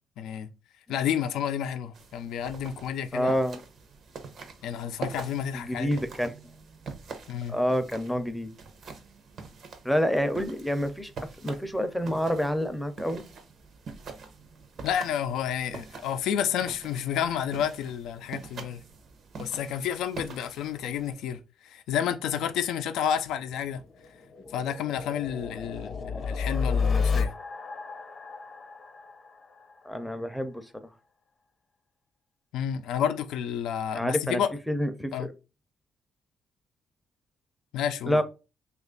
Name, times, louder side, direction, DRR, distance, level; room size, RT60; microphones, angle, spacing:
voice 1, 0.2-0.5 0.9-3.3 4.6-5.9 7.3-7.6 14.8-18.8 19.4-23.8 24.5-27.3 32.5-34.5 35.1-35.3 37.7-38.2, left 9 dB, 85° left, 0.4 m, -30 dB
sound 1, 1.9-21.1, right 4 dB, 60° right, 0.7 m, -44 dB
voice 2, 3.1-3.6 5.5-6.3 7.5-8.5 9.8-11.1 11.4-13.2 26.7-26.8 29.8-30.9 33.9-35.3 38.1-38.2, equal, 5° left, 0.5 m, -28 dB
sound 2, 23.3-30.1, left 5 dB, 45° left, 0.7 m, -31 dB
3.0 x 2.4 x 3.7 m
cardioid pair, 90°, 0 cm